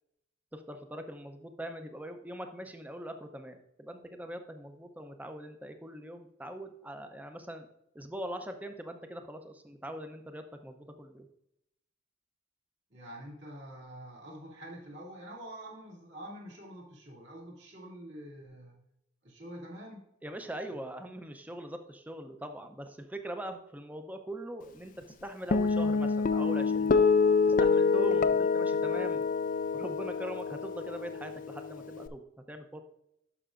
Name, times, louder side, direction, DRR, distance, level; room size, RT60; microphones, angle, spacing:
voice 1, 0.5-7.7 7.9-11.3 20.2-24.9 25.2-27.0 27.4-29.2 29.7-32.8, right 1 dB, 10° right, 6 dB, 0.6 m, -42 dB
voice 2, 12.9-18.8 19.2-20.1 20.7-20.8, right 1 dB, 55° right, -3 dB, 2.4 m, -46 dB
Guitar, 25.5-32.1, left 4 dB, 40° left, 0.4 m, -27 dB
11.5 x 5.6 x 2.5 m, 0.79 s
head